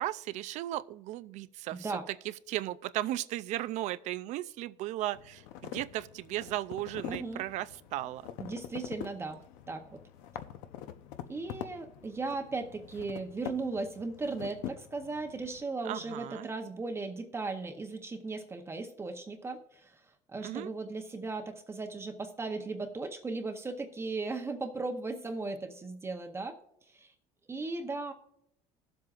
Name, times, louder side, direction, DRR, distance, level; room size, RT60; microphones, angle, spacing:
voice 1, 0.0-8.3 15.8-16.5 20.4-20.7, right 15 dB, 60° right, 0.4 m, -36 dB
voice 2, 1.7-2.0 7.1-7.4 8.4-9.4 9.7-10.0 11.3-20.0 20.3-26.6 26.9-27.1 27.5-28.1, right 3 dB, 20° right, 0.8 m, -37 dB
sound 1, 5.1-15.6, left 11 dB, 80° left, 0.8 m, -45 dB
20.5 x 7.7 x 2.5 m
cardioid pair, 130°, 14 cm